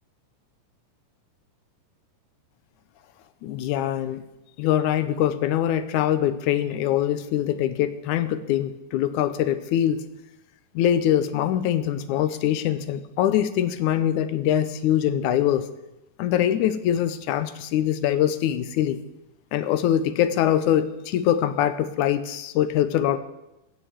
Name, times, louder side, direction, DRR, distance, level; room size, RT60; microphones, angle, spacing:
voice 1, 3.4-4.2 4.6-10.0 10.8-15.7 16.2-19.0 19.5-23.2, left 11 dB, 75° left, 12 dB, 1.9 m, -23 dB
15.0 x 7.7 x 8.0 m, 0.92 s
omnidirectional pair, 3.9 m